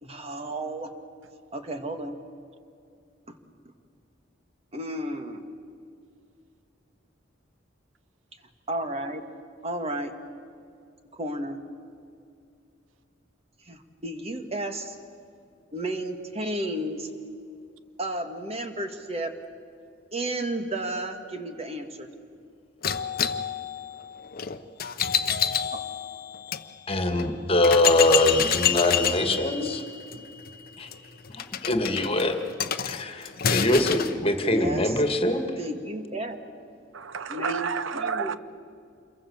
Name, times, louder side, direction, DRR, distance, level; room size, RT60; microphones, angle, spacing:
voice 1, 0.0-0.9 1.5-2.2 3.3-3.4 4.7-5.4 8.7-9.2 9.6-10.1 11.1-11.6 13.6-15.0 15.7-17.1 18.0-19.3 20.1-22.1 25.7-25.8 29.1-30.3 34.4-34.9 35.6-36.4 37.3-38.4, right 1 dB, 30° right, 6 dB, 1.8 m, -33 dB
sound 1, 22.8-26.6 27.2-27.3 27.6-34.2, left 8 dB, 50° left, 0.9 m, -28 dB
voice 2, 26.9-29.8 30.8-30.9 31.3-32.4 32.9-35.4, left 1 dB, 30° left, 6 dB, 2.0 m, -23 dB
voice 3, 36.9-38.4, right 6 dB, 85° right, 14 dB, 0.8 m, -30 dB
28.0 x 22.5 x 7.1 m, 2.4 s
head